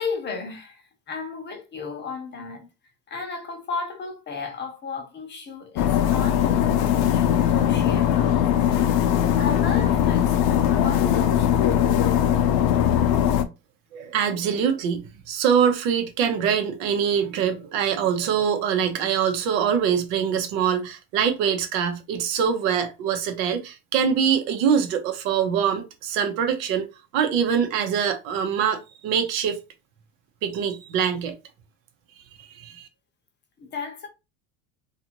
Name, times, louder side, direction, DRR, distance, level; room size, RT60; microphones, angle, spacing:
voice 1, 0.0-2.7 3.1-6.6 7.0-9.0 9.3-11.4 33.6-34.1, left 4 dB, 25° left, 0.7 m, -34 dB
sound 1, 5.8-13.4, left 10 dB, 65° left, 0.6 m, -20 dB
voice 2, 13.9-26.9 27.1-29.6 30.4-31.3 32.6-32.9, right 7 dB, 85° right, 0.9 m, -24 dB
2.6 x 2.5 x 2.9 m
supercardioid pair, 125°, 40 cm